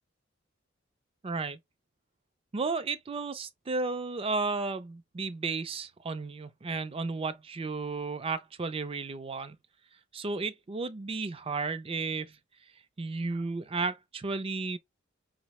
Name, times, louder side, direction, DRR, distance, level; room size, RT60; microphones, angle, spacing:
voice 1, 1.2-1.6 2.5-9.6 10.1-12.4 13.0-14.8, right 3 dB, 30° right, 0.4 m, -33 dB
5.4 x 2.1 x 2.9 m
head